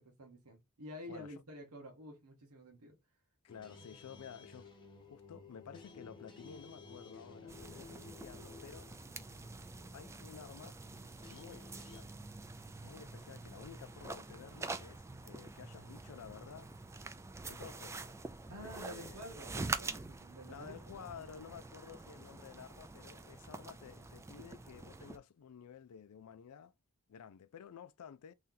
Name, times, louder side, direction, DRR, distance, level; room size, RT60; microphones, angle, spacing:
voice 1, 0.0-3.0 18.5-21.1, equal, 90° right, 1.1 m, -50 dB
voice 2, 1.1-1.4 3.4-4.7 5.0-9.0 9.9-10.8 11.3-12.1 12.8-16.7 17.5-18.0 18.5-19.2 20.5-26.7 27.1-28.3, left 7 dB, 80° left, 0.4 m, -52 dB
sound 1, 3.5-12.0, left 4 dB, 20° left, 0.8 m, -55 dB
sound 2, 7.5-25.2, right 3 dB, 15° right, 0.3 m, -46 dB
3.2 x 2.9 x 3.7 m
head